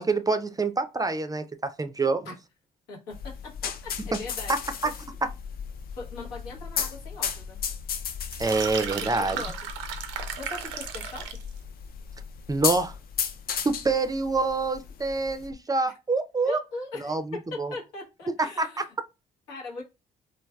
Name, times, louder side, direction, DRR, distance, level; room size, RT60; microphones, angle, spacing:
voice 1, 0.0-2.3 4.5-4.9 5.2-5.3 8.4-9.4 12.5-13.0 13.6-16.6 17.0-17.7 18.4-18.8, right 3 dB, 20° right, 0.4 m, -26 dB
sound 1, 3.1-15.5, left 7 dB, 55° left, 0.5 m, -35 dB
voice 2, 3.6-4.6 6.0-7.6 8.9-9.7 10.4-11.4 16.4-18.8 19.5-19.8, left 3 dB, 85° left, 0.9 m, -40 dB
sound 2, 8.2-11.5, right 8 dB, 85° right, 0.5 m, -35 dB
3.2 x 2.3 x 2.2 m
supercardioid pair, 60°, 19 cm